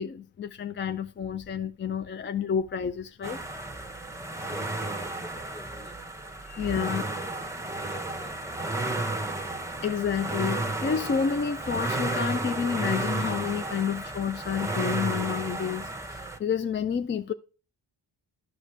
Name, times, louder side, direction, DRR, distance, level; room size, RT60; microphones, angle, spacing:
voice 1, 0.0-3.4 6.5-7.1 9.8-17.3, left 7 dB, 25° left, 0.3 m, -30 dB
sound 1, 3.2-16.4, right 2 dB, 5° right, 0.7 m, -32 dB
voice 2, 4.3-6.0 6.5-9.0, equal, 10° left, 1.3 m, -48 dB
11.5 x 5.0 x 3.2 m
cardioid pair, 65°, 49 cm